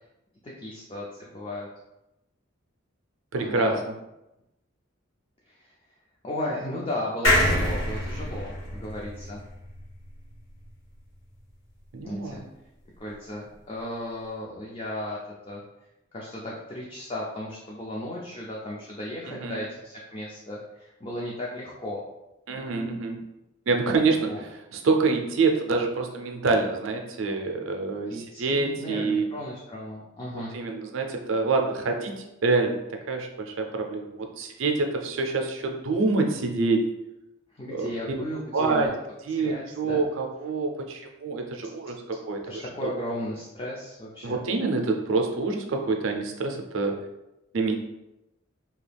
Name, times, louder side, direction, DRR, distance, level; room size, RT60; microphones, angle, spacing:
voice 1, 0.4-1.7 3.4-3.9 5.5-5.7 6.2-9.4 12.0-12.4 13.0-15.2 15.4-15.6 16.1-22.0 24.0-24.4 28.1-30.6 37.5-38.9 39.4-40.0 42.4-44.4, left 1 dB, 25° left, -4 dB, 0.4 m, -35 dB
voice 2, 3.3-3.7 11.9-12.5 19.4-19.6 22.5-23.2 23.7-24.3 24.7-29.3 30.5-36.9 37.7-37.9 38.5-38.9 39.3-42.4 42.8-42.9 44.2-47.0 47.5-47.7, right 3 dB, 75° right, 3 dB, 0.4 m, -26 dB
sound 1, 7.2-10.7 11.1-11.2 11.4-11.5, left 1 dB, 80° left, 1.5 m, -26 dB
2.8 x 2.3 x 3.3 m, 0.93 s
head